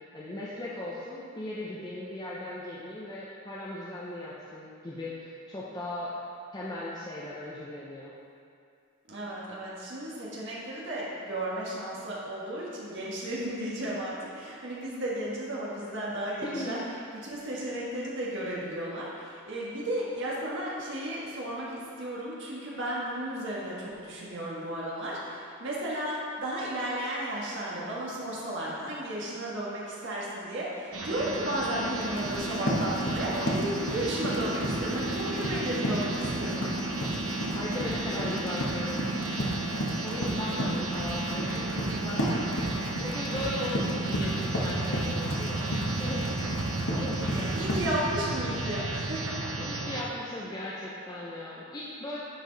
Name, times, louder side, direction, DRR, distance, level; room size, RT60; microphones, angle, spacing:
voice 1, 0.1-6.1 6.5-8.1 16.4-16.9 37.5-39.0 40.0-42.4 43.0-46.3 46.9-47.6 49.6-52.2, left 1 dB, 20° left, -6 dB, 0.7 m, -37 dB
voice 2, 9.1-16.8 17.1-36.6 47.3-49.4, right 1 dB, 55° right, -6 dB, 1.6 m, -34 dB
sound 1, 30.9-50.0, right 2 dB, 75° right, 0.8 m, -33 dB
Run, 32.0-48.0, equal, 65° left, 1.3 m, -34 dB
10.0 x 4.6 x 4.0 m, 2.3 s
head